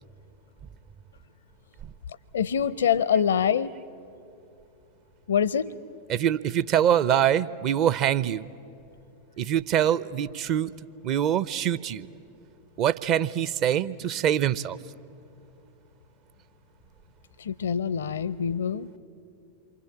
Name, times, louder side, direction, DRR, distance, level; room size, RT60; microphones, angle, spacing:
voice 1, 2.3-3.7 5.3-5.7 17.4-19.0, left 8 dB, 65° left, 19 dB, 0.5 m, -25 dB
voice 2, 6.1-8.5 9.4-10.7 11.0-12.1 12.8-14.8, right 10 dB, 40° right, 17 dB, 0.6 m, -24 dB
28.0 x 24.0 x 8.7 m, 2.7 s
figure-of-eight pair, 90°, 0 cm